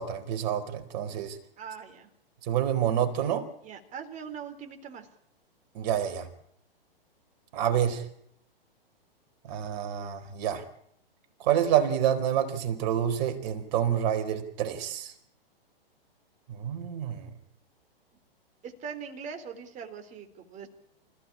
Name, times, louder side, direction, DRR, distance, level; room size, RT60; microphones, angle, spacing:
voice 1, 0.0-1.4 2.4-3.5 5.7-6.3 7.5-8.0 9.5-10.6 11.4-15.1 16.5-17.3, right 10 dB, 45° right, 6 dB, 4.6 m, -28 dB
voice 2, 1.6-2.1 3.6-5.1 18.6-20.7, right 6 dB, 25° right, 7 dB, 3.9 m, -41 dB
28.0 x 16.0 x 8.7 m, 0.72 s
figure-of-eight pair, 115°, 30 cm